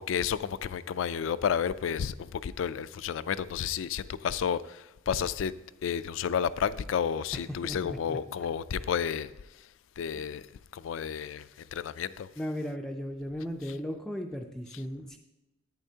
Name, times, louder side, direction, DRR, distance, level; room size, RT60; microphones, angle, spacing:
voice 1, 0.0-9.3 10.0-10.4 10.7-12.3, left 7 dB, 75° left, 0.3 m, -31 dB
voice 2, 7.6-8.5 10.1-10.3 12.4-15.2, equal, 5° left, 0.4 m, -37 dB
10.5 x 9.1 x 2.8 m
head